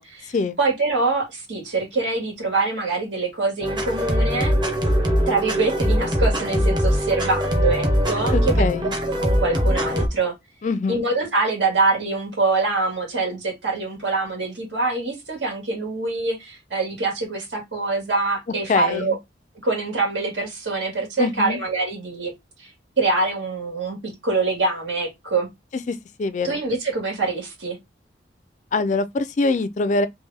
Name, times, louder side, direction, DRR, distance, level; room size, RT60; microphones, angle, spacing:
voice 1, 0.0-4.5 5.3-8.9 9.2-10.3 10.9-19.2 19.6-22.3 22.6-22.7 23.0-25.5 26.4-27.8, right 3 dB, 85° right, 2.1 m, -24 dB
sound 1, 3.6-10.1, equal, 25° right, 0.8 m, -21 dB
voice 2, 8.3-8.9 10.6-11.0 18.7-19.2 21.2-21.6 25.9-26.6 28.7-30.1, left 3 dB, 40° left, 0.3 m, -23 dB
3.3 x 3.0 x 3.4 m
head